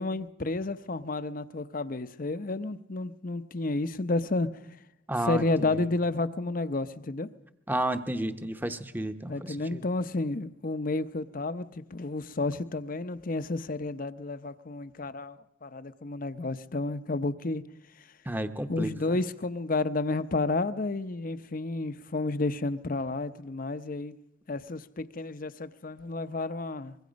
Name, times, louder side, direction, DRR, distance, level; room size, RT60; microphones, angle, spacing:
voice 1, 0.0-4.5 5.2-7.3 9.3-17.6 18.0-18.1 18.7-24.1 24.5-27.0, left 2 dB, 45° left, 0.7 m, -31 dB
voice 2, 5.1-5.8 7.7-9.8 18.3-19.2, right 1 dB, 10° right, 0.9 m, -32 dB
24.5 x 22.0 x 5.2 m
head